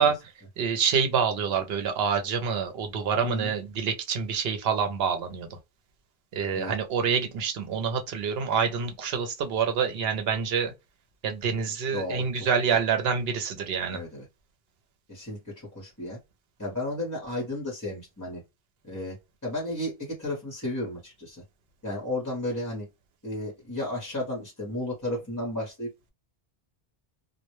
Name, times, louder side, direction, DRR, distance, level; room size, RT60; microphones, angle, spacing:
voice 1, 0.0-5.6 6.3-10.7 11.2-14.0, right 6 dB, 80° right, 0.8 m, -27 dB
voice 2, 3.2-3.5 6.5-6.7 11.9-12.2 13.9-14.2 15.1-16.2 16.6-18.4 18.8-21.4 21.8-22.9 23.2-26.1, left 1 dB, 20° left, 0.7 m, -33 dB
2.1 x 2.1 x 2.9 m
omnidirectional pair, 1.0 m